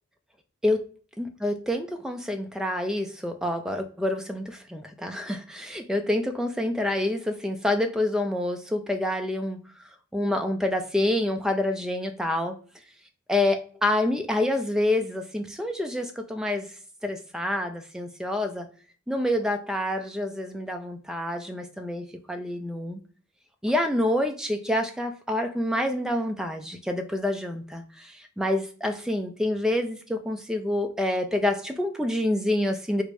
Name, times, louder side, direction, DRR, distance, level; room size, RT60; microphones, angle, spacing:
voice 1, 1.2-9.6 10.1-12.6 13.3-16.7 17.0-18.7 19.1-23.0 23.6-33.0, left 1 dB, 5° right, 5 dB, 0.3 m, -27 dB
3.1 x 2.5 x 3.2 m, 0.42 s
head